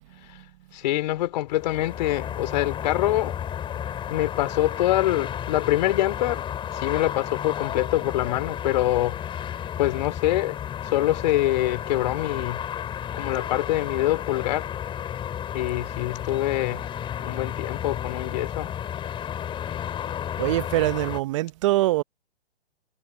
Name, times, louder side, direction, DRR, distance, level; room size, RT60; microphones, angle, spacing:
voice 1, 0.7-3.4 4.1-6.5 6.7-9.3 9.8-12.7 13.1-14.7 15.5-16.9 17.2-18.7, left 15 dB, 40° left, 4.5 m, -25 dB
sound 1, 1.5-21.2, left 9 dB, 15° left, 6.9 m, -32 dB
voice 2, 20.4-22.0, right 17 dB, 30° right, 0.9 m, -23 dB
hypercardioid pair, 140°, 33 cm